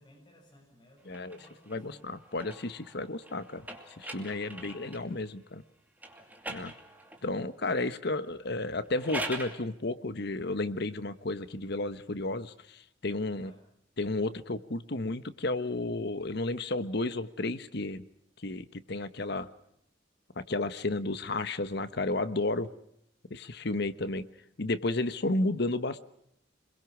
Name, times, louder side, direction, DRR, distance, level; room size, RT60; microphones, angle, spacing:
voice 1, 0.0-2.1 7.6-8.0 13.4-13.6, equal, 25° left, 0 dB, 7.1 m, -60 dB
voice 2, 1.0-1.4 1.7-3.7 4.0-5.6 6.5-6.7 7.2-13.5 14.0-18.0 18.4-19.5 20.4-22.7 23.3-24.2 24.6-26.0, left 2 dB, 60° left, 12 dB, 1.2 m, -32 dB
sound 1, 1.1-5.1 6.0-7.4 8.8-9.6, right 1 dB, 10° right, 2.6 m, -42 dB
27.0 x 22.0 x 6.2 m, 0.73 s
head